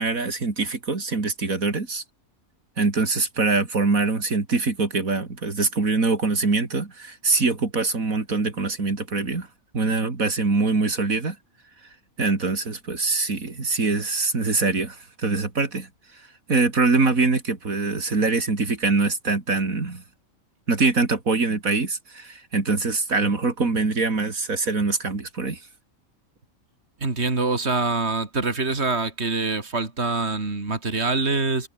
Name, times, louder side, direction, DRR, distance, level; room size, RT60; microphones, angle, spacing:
voice 1, 0.0-2.0 2.8-9.5 9.7-11.4 12.2-15.9 16.5-20.0 20.7-25.6, right 3 dB, 80° right, 3.5 m, -23 dB
voice 2, 27.0-31.7, right 3 dB, 50° right, 3.6 m, -25 dB
omnidirectional pair, 1.5 m